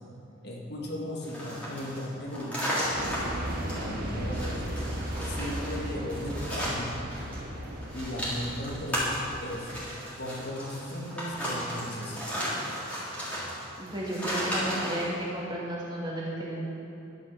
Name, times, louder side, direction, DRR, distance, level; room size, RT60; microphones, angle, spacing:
voice 1, 0.4-2.8 3.7-4.7 5.2-6.9 7.9-9.2 9.4-9.7 10.2-12.3, equal, 50° left, -2 dB, 1.9 m, -36 dB
sound 1, 1.2-7.4 7.6-15.1, equal, 5° left, 3.4 m, -34 dB
sound 2, 3.0-9.8, equal, 45° right, 1.7 m, -36 dB
voice 2, 13.8-16.6, right 1 dB, 20° right, -5 dB, 2.6 m, -33 dB
12.0 x 10.5 x 6.3 m, 3.0 s
head